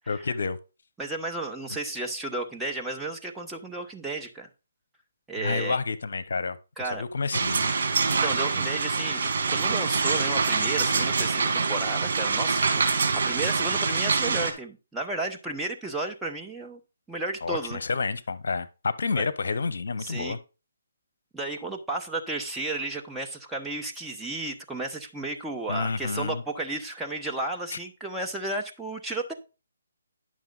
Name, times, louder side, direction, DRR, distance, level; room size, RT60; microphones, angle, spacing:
voice 1, 0.1-0.6 5.4-6.6 6.8-7.7 17.4-20.4 25.7-26.4 27.7-27.8, left 4 dB, 70° left, 0.8 m, -29 dB
voice 2, 1.0-4.5 5.3-5.8 6.8-7.0 8.2-16.8 17.1-17.8 19.1-19.2 20.0-20.4 21.3-29.3, right 2 dB, 5° right, 1.0 m, -33 dB
sound 1, 7.3-14.5, right 4 dB, 55° right, 2.5 m, -25 dB
10.5 x 6.4 x 3.9 m
hypercardioid pair, 155°, 0 cm